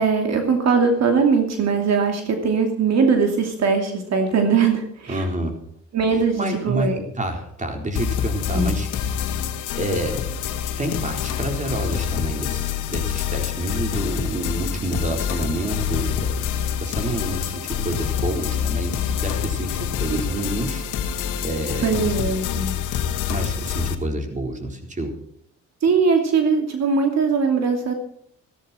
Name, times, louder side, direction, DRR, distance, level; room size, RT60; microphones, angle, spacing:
voice 1, 0.0-5.3 5.9-7.0 8.5-8.7 20.1-20.2 21.8-22.8 25.8-27.9, right 5 dB, 60° right, 4 dB, 2.7 m, -20 dB
voice 2, 5.1-5.6 6.1-9.4 9.7-10.3 10.8-16.5 16.8-20.9 21.4-21.9 23.3-25.1, right 1 dB, 25° right, 4 dB, 4.2 m, -28 dB
sound 1, 7.9-23.9, left 8 dB, 85° left, 1.9 m, -26 dB
16.5 x 14.0 x 4.4 m, 0.70 s
cardioid pair, 90°, 30 cm